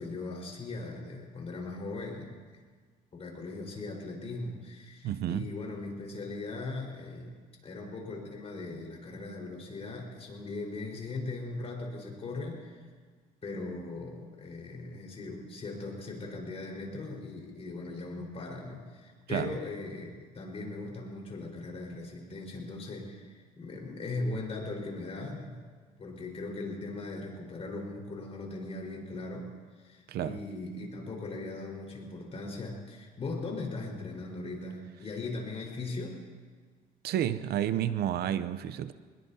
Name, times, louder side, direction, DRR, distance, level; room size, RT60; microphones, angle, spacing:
voice 1, 0.0-2.3 3.1-7.3 7.6-12.9 13.4-25.6 26.0-36.2, left 2 dB, 35° left, -1 dB, 4.6 m, -39 dB
voice 2, 5.0-5.5 19.3-19.6 30.1-30.4 37.0-38.9, right 11 dB, 70° right, 13 dB, 0.7 m, -30 dB
24.0 x 20.5 x 2.8 m, 1.5 s
cardioid pair, 110°, 17 cm